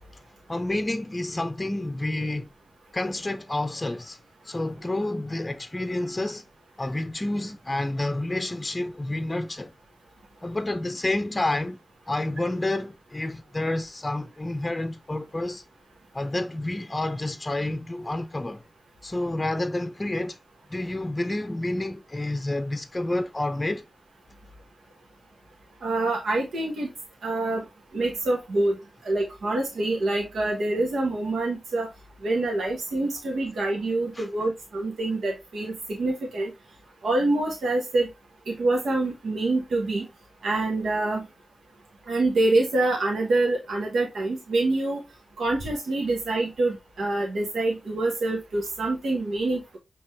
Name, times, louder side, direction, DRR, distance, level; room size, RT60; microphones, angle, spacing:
voice 1, 0.5-2.5 2.9-4.2 4.4-6.4 6.8-9.7 10.4-11.8 12.1-15.6 16.1-18.6 19.0-20.4 20.7-23.8 34.1-34.3, left 2 dB, 25° left, 0.6 m, -29 dB
voice 2, 25.8-26.9 27.2-27.6 27.9-28.8 29.0-31.9 32.2-36.5 37.0-38.1 38.5-40.1 40.4-41.2 42.1-45.0 45.4-49.8, right 2 dB, 90° right, 1.1 m, -26 dB
5.6 x 3.0 x 3.0 m
cardioid pair, 40°, 0 cm